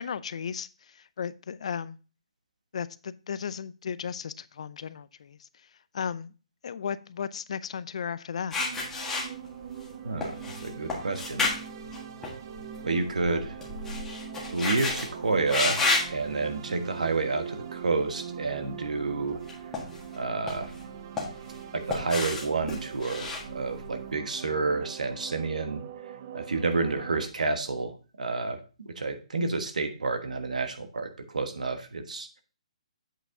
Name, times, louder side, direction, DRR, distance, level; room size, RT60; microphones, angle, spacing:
voice 1, 0.0-2.0 2.7-5.5 5.9-6.3 6.6-8.6, left 7 dB, 60° left, 0.4 m, -35 dB
sound 1, 8.5-9.9 10.2-12.8 13.1-15.1 15.5-16.1 16.8-17.0 19.3-20.2 20.5-21.6 21.9-24.0, left 3 dB, 10° left, 1.6 m, -31 dB
sound 2, 8.6-27.3, right 8 dB, 35° right, 0.5 m, -42 dB
voice 2, 10.0-10.3 10.6-11.5 12.8-13.6 14.5-15.8 16.1-19.4 20.1-20.7 21.7-25.8 26.3-32.4, right 3 dB, 85° right, 1.2 m, -30 dB
8.1 x 4.6 x 3.7 m
hypercardioid pair, 155°, 4 cm